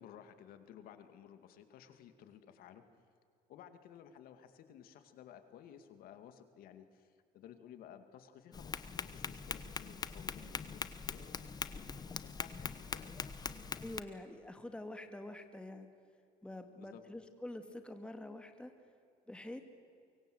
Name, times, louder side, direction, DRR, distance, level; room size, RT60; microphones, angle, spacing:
voice 1, 0.0-2.8 3.5-13.1 16.8-17.0, left 9 dB, 70° left, 9 dB, 2.2 m, -56 dB
Tap, 8.5-14.0, left 5 dB, 25° left, 1.0 m, -42 dB
voice 2, 13.8-15.9 16.4-18.7 19.3-19.6, left 1 dB, 5° left, 7 dB, 2.1 m, -46 dB
24.5 x 23.5 x 7.9 m, 2.4 s
cardioid pair, 120°, 16 cm